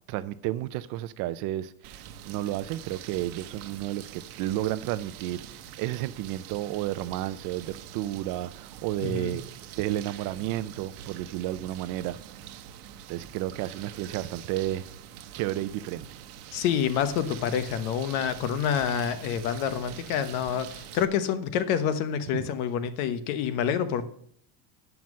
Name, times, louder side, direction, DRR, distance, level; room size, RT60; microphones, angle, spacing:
voice 1, 0.1-12.2 13.1-14.9 15.3-16.1 22.3-22.5, right 14 dB, 45° right, 14 dB, 0.5 m, -32 dB
sound 1, 1.8-21.0, right 10 dB, 90° right, 0.9 m, -45 dB
voice 2, 9.0-9.4 16.5-24.0, left 8 dB, 70° left, 11 dB, 1.1 m, -27 dB
9.3 x 5.9 x 6.2 m, 0.64 s
supercardioid pair, 145°, 44 cm